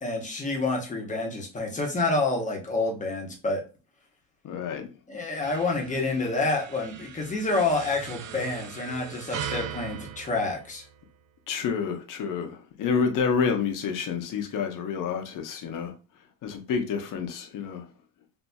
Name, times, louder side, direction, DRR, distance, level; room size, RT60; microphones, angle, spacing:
voice 1, 0.0-3.6 5.1-10.8, left 3 dB, 15° left, 0.8 m, -28 dB
voice 2, 4.4-4.9 11.5-15.9 16.4-17.9, left 6 dB, 45° left, 0.7 m, -28 dB
sound 1, 5.4-11.2, right 8 dB, 45° right, 0.4 m, -40 dB
4.0 x 2.6 x 2.2 m
cardioid pair, 135°, 46 cm